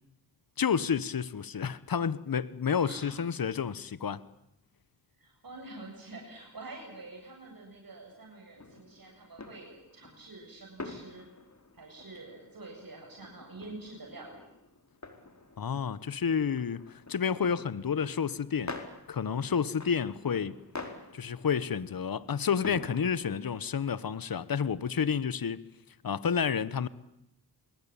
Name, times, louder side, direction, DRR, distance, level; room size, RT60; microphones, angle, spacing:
voice 1, 0.6-4.2 15.6-18.8 19.1-20.6 21.1-25.6 26.0-26.9, left 7 dB, 65° left, 1.2 m, -30 dB
voice 2, 2.8-3.2 5.2-11.2 11.7-14.5, right 2 dB, 60° right, 7.8 m, -47 dB
sound 1, 8.6-23.4, left 3 dB, 45° left, 4.5 m, -47 dB
25.0 x 22.0 x 9.0 m
cardioid pair, 50°, 39 cm